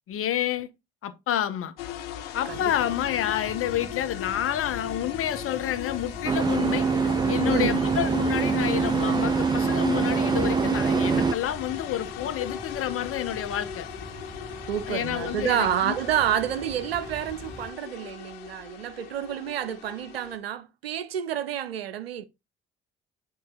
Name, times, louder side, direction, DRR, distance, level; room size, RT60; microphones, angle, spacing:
voice 1, 0.1-0.7 1.0-1.7 2.3-13.9 14.9-15.9, left 11 dB, 50° left, 0.9 m, -29 dB
sound 1, 1.8-20.4, left 10 dB, 75° left, 0.7 m, -38 dB
sound 2, 2.5-17.7, right 3 dB, 30° right, 1.3 m, -44 dB
sound 3, 6.3-11.4, right 5 dB, 15° right, 0.3 m, -24 dB
voice 2, 7.4-7.8 14.7-22.3, right 10 dB, 85° right, 0.5 m, -29 dB
9.1 x 3.1 x 3.7 m
figure-of-eight pair, 45°, 29 cm